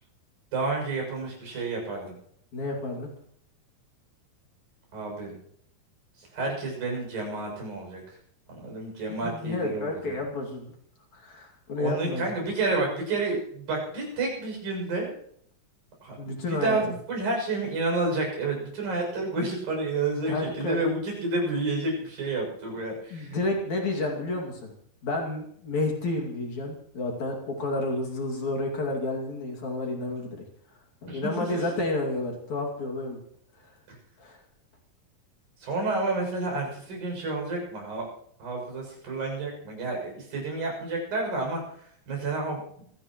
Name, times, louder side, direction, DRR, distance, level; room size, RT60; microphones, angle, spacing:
voice 1, 0.5-2.1 4.9-5.3 6.2-8.0 8.5-10.2 11.8-15.1 16.0-23.4 31.1-31.6 33.9-34.0 35.6-38.1 38.4-42.8, right 3 dB, 85° right, 0 dB, 8.6 m, -30 dB
voice 2, 2.5-3.1 9.2-10.7 11.1-12.3 16.2-16.8 20.3-20.8 23.1-24.8 25.0-30.5 31.0-33.2 33.6-33.7 34.2-34.4, left 2 dB, 55° left, 1 dB, 3.7 m, -30 dB
26.0 x 17.0 x 3.1 m, 0.65 s
omnidirectional pair, 4.0 m